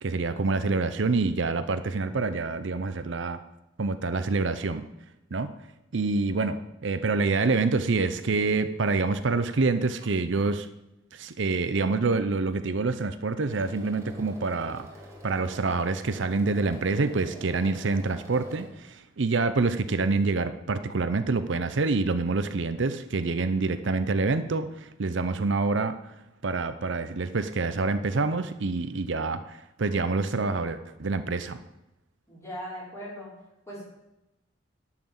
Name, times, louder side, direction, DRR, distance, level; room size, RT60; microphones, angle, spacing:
voice 1, 0.0-3.4 3.8-4.8 5.3-5.5 5.9-10.7 11.1-14.9 15.2-26.1 26.4-31.6, right 3 dB, 65° right, 10 dB, 0.6 m, -27 dB
sound 1, 13.5-18.7, equal, 15° right, 2.0 m, -46 dB
voice 2, 32.3-33.4 33.7-33.8, equal, 15° left, -6 dB, 4.9 m, -40 dB
11.0 x 5.9 x 7.7 m, 0.93 s
head